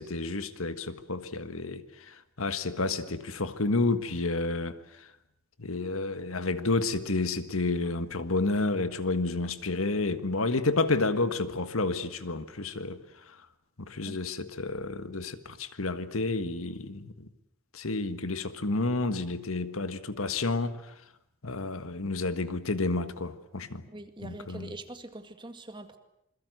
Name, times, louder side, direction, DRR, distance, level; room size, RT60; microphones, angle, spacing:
voice 1, 0.0-5.1 5.6-13.4 13.8-17.3 17.7-20.8 21.4-23.8 24.2-24.7, left 3 dB, 85° left, 1.6 m, -30 dB
voice 2, 23.9-26.0, right 2 dB, 25° right, 2.0 m, -43 dB
27.5 x 22.0 x 7.9 m
head